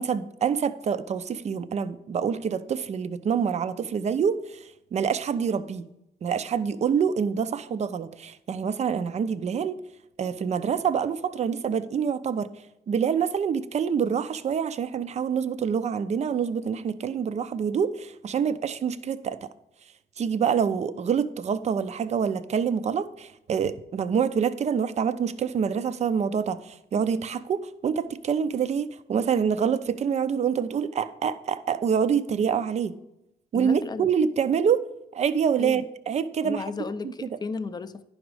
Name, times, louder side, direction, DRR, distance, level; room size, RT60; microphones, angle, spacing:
voice 1, 0.0-5.8 6.2-9.8 10.2-12.5 12.9-19.5 20.2-32.9 33.5-34.8 35.1-36.6 37.0-37.3, right 7 dB, 40° right, 13 dB, 0.4 m, -26 dB
voice 2, 33.5-34.1 35.6-35.8 36.4-38.1, left 4 dB, 25° left, 12 dB, 0.4 m, -34 dB
10.5 x 5.1 x 4.7 m, 0.85 s
cardioid pair, 135°, 18 cm